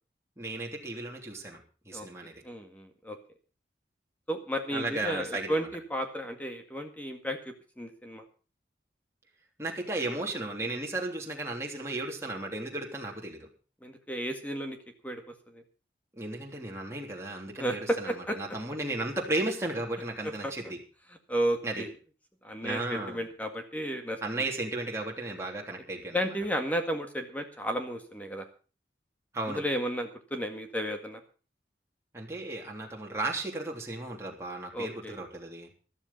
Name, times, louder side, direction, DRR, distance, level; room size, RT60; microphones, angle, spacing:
voice 1, 0.4-1.6 1.8-2.4 4.7-5.7 9.6-13.5 16.1-20.8 21.6-21.8 22.6-23.2 24.2-26.2 29.3-29.6 32.1-35.7, right 2 dB, 15° right, -1 dB, 3.2 m, -35 dB
voice 2, 2.4-3.2 4.3-8.2 13.8-14.8 15.0-15.6 17.6-18.4 20.4-20.5 21.3-21.9 22.4-24.2 26.1-28.5 29.5-31.2 34.7-35.2, equal, 10° left, 5 dB, 1.9 m, -33 dB
13.5 x 13.0 x 5.5 m, 0.37 s
head